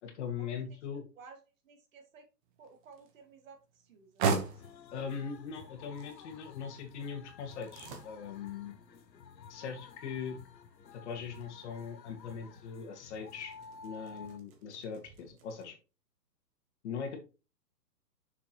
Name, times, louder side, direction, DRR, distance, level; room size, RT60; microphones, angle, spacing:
voice 1, 0.0-1.0 4.9-8.7 9.5-10.4 10.9-13.5 13.8-15.8 16.8-17.2, left 6 dB, 40° left, 4 dB, 2.1 m, -40 dB
voice 2, 1.2-2.3 2.6-4.3, right 5 dB, 50° right, 5 dB, 2.3 m, -55 dB
sound 1, 2.4-15.6, right 5 dB, 30° right, 1.5 m, -42 dB
sound 2, 4.4-14.4, left 6 dB, 85° left, 1.0 m, -53 dB
6.8 x 6.6 x 3.1 m, 0.30 s
hypercardioid pair, 145°, 50 cm